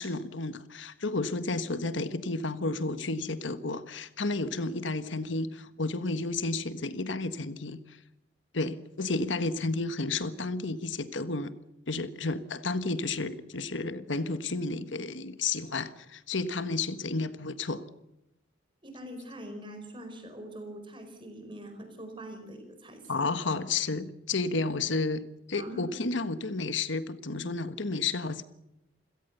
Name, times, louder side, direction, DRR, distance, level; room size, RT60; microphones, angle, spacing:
voice 1, 0.0-8.0 8.5-11.5 11.9-17.8 23.1-28.4, left 3 dB, 80° left, 12 dB, 1.4 m, -32 dB
voice 2, 18.8-23.2 25.5-25.8, right 1 dB, 25° right, 7 dB, 4.9 m, -43 dB
27.5 x 17.5 x 6.9 m, 0.89 s
head